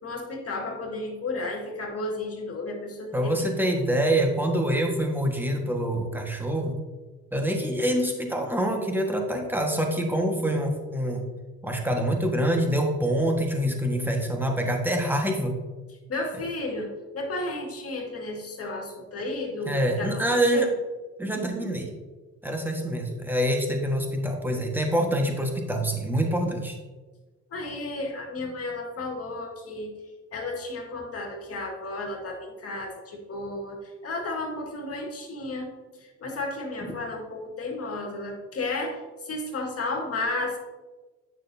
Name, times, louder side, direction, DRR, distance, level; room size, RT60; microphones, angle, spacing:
voice 1, 0.0-3.5 16.1-20.7 27.5-29.9 30.3-35.7 36.0-40.6, left 2 dB, 50° left, 0 dB, 1.9 m, -33 dB
voice 2, 3.1-6.8 7.3-11.2 11.6-15.6 19.6-20.7 21.2-21.9 22.4-26.8, right 1 dB, 5° right, 2 dB, 1.4 m, -25 dB
9.1 x 6.4 x 2.7 m, 1.3 s
cardioid pair, 90°, 30 cm